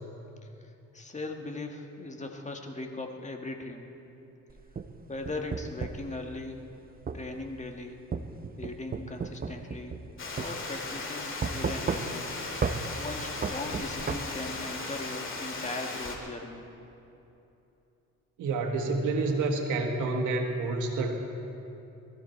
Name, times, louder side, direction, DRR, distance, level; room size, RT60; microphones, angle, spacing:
voice 1, 0.6-3.9 5.1-6.6 7.1-8.0 8.6-10.0 10.4-12.3 13.0-16.6, left 2 dB, 25° left, 3 dB, 1.7 m, -39 dB
sound 1, 4.5-6.1 7.1-7.2 8.1-10.1 10.4-10.5 11.4-12.3 12.6-12.8 13.4-14.2, right 5 dB, 30° right, 0.8 m, -32 dB
Water, 10.2-16.2, left 3 dB, 40° left, 2.3 m, -37 dB
voice 2, 18.4-21.2, right 3 dB, 80° right, 3 dB, 1.7 m, -28 dB
20.5 x 14.0 x 4.5 m, 2.9 s
cardioid pair, 90°, 30 cm